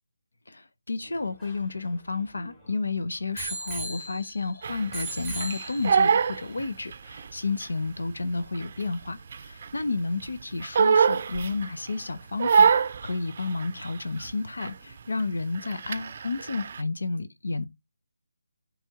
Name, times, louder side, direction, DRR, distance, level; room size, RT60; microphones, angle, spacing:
voice 1, 0.5-12.8 13.0-17.6, left 3 dB, 80° left, 1.0 m, -31 dB
Bicycle bell, 1.1-2.7 3.4-4.5 4.9-6.2 6.9-7.0, right 2 dB, 5° left, 2.8 m, -38 dB
Crying sobbing, 4.6-7.3 7.6-9.9 10.2-11.9 12.4-14.3 14.6-14.9 15.2-16.8, right 6 dB, 40° right, 0.5 m, -25 dB
9.1 x 3.6 x 3.7 m
figure-of-eight pair, 165°, 0 cm